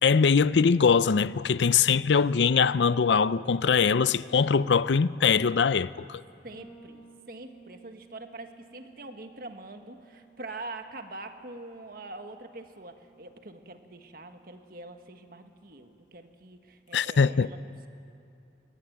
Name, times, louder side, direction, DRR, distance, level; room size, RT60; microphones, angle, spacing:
voice 1, 0.0-6.2 16.9-17.5, left 6 dB, 90° left, 0.5 m, -22 dB
voice 2, 6.4-17.9, right 2 dB, 55° right, 1.5 m, -44 dB
Bass guitar, 6.5-16.2, right 4 dB, 65° left, 6.8 m, -57 dB
21.5 x 20.5 x 9.3 m
head